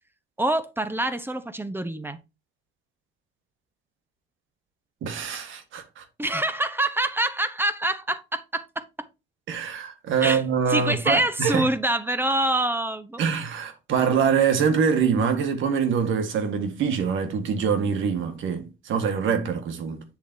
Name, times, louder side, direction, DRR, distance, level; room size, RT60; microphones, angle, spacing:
voice 1, 0.4-2.2 6.2-8.8 10.2-10.4 10.7-13.2, right 1 dB, 10° right, 1.1 m, -25 dB
voice 2, 5.0-6.0 9.5-11.7 13.2-20.0, right 6 dB, 80° right, 1.7 m, -24 dB
8.1 x 7.0 x 2.8 m
cardioid pair, 90°, 20 cm